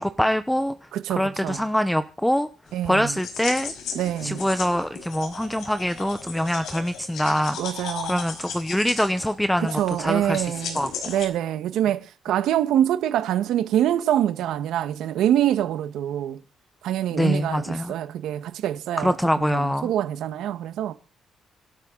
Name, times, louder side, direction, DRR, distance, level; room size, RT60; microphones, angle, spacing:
voice 1, 0.0-0.7 1.1-2.5 2.8-3.7 4.2-7.6 8.1-10.4 10.7-10.9 17.1-17.9 19.0-19.9, equal, 5° left, 0.8 m, -24 dB
voice 2, 0.9-1.6 2.7-3.2 3.9-4.4 7.6-8.2 9.6-16.4 16.8-20.9, right 11 dB, 90° right, 1.5 m, -25 dB
sound 1, 2.7-11.3, left 6 dB, 80° left, 4.9 m, -36 dB
24.5 x 12.5 x 4.0 m
cardioid pair, 135°, 0 cm